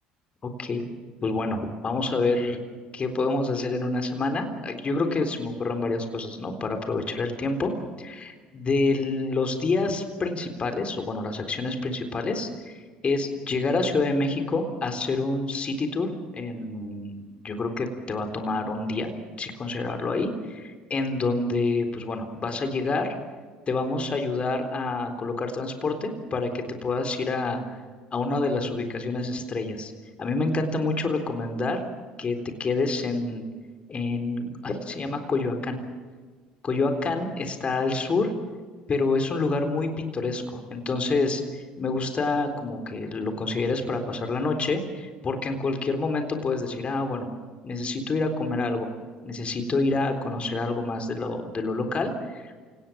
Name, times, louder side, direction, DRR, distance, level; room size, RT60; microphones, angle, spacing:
voice 1, 0.4-0.8 1.2-2.6 2.9-7.7 8.0-19.1 19.4-23.1 23.7-27.6 28.1-29.9 30.2-31.8 32.2-33.5 33.9-35.8 36.6-38.3 38.9-47.3 47.6-48.9 49.2-52.5, left 3 dB, 35° left, 6 dB, 3.9 m, -27 dB
28.0 x 18.0 x 7.6 m, 1.5 s
hypercardioid pair, 70°, 3 cm